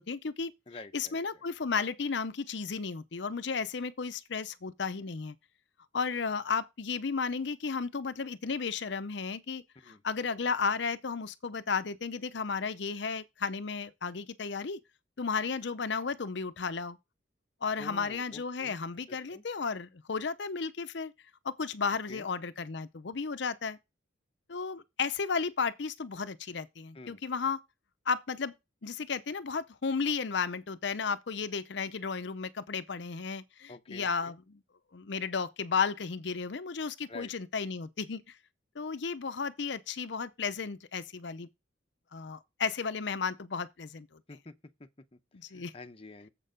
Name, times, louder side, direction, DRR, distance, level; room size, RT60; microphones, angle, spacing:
voice 1, 0.0-0.5 0.9-5.4 5.9-14.8 15.2-17.0 17.6-21.1 21.4-23.8 24.5-27.6 28.1-28.5 28.8-34.6 34.9-38.4 38.8-41.5 42.1-44.1 45.3-45.7, left 5 dB, 65° left, 0.6 m, -34 dB
voice 2, 0.7-1.4 9.8-10.0 17.8-18.8 19.1-19.4 22.1-22.3 26.9-27.2 33.7-34.3 37.1-37.3 44.3-44.5 44.8-45.2 45.5-46.3, left 2 dB, 30° left, 0.8 m, -48 dB
7.5 x 6.6 x 5.0 m
head